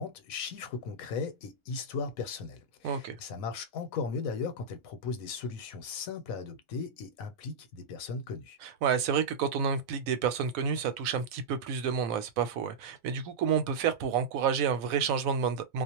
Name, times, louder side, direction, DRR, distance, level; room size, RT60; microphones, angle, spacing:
voice 1, 0.0-8.6, left 5 dB, 85° left, 1.1 m, -37 dB
voice 2, 2.8-3.2 8.6-15.8, right 6 dB, 90° right, 1.0 m, -29 dB
2.5 x 2.0 x 2.8 m
omnidirectional pair, 1.4 m